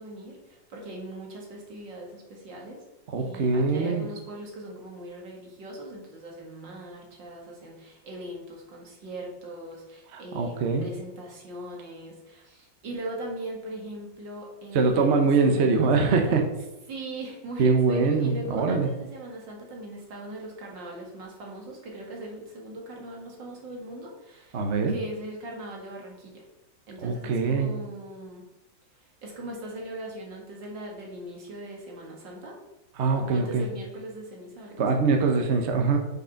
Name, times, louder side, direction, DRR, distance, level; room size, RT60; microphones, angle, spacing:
voice 1, 0.0-2.8 3.2-16.4 16.9-26.5 26.9-28.4 28.9-32.6 33.2-34.9, right 1 dB, 85° right, -1 dB, 2.5 m, -40 dB
voice 2, 3.1-4.1 10.1-10.9 14.7-16.4 17.6-18.9 24.5-24.9 27.0-27.7 33.0-33.7 34.8-36.0, right 4 dB, 45° right, 4 dB, 1.1 m, -23 dB
6.3 x 5.3 x 5.8 m, 0.99 s
omnidirectional pair, 1.9 m